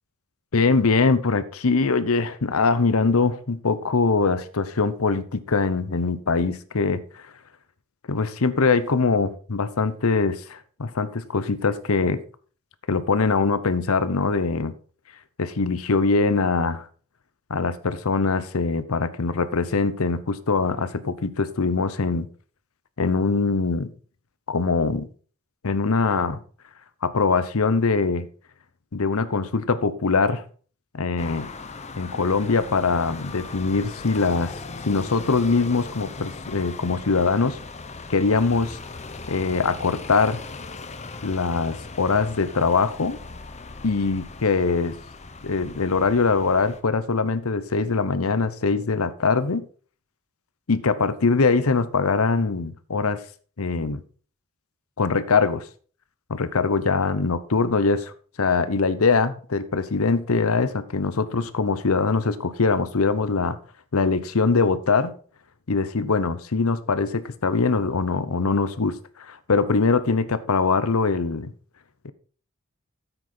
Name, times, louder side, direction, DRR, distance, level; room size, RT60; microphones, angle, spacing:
voice 1, 0.5-7.3 8.1-12.2 12.9-14.7 15.4-16.9 17.5-22.3 23.0-23.9 24.5-25.1 25.6-26.4 27.0-28.3 28.9-30.4 30.9-31.5 32.0-34.5 34.8-37.6 38.1-38.8 39.3-40.4 41.2-43.2 43.8-45.0 45.4-49.6 50.7-53.2 53.6-54.0 55.0-55.6 56.3-58.1 58.4-63.6 63.9-65.1 65.7-71.5 72.0-72.1, left 4 dB, 70° left, 14 dB, 0.8 m, -22 dB
sound 1, 31.2-46.8, left 3 dB, 30° left, 0.8 m, -39 dB
9.5 x 8.0 x 4.4 m, 0.42 s
head